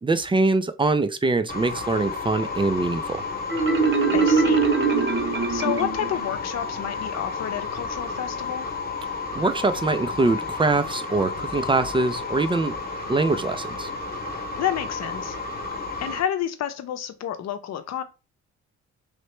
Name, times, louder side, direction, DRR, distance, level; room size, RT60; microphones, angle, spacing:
voice 1, 0.0-3.2 9.3-12.7 13.1-13.9, right 3 dB, 15° right, 0.4 m, -23 dB
sound 1, 1.5-16.2, left 4 dB, 30° left, 1.0 m, -32 dB
Marimba xylophone, 3.5-6.3, right 4 dB, 40° right, 0.9 m, -22 dB
voice 2, 4.1-4.7 5.5-8.7 14.6-15.4 16.0-18.0, left 10 dB, 60° left, 0.7 m, -30 dB
3.2 x 2.8 x 3.2 m
cardioid pair, 90°, 30 cm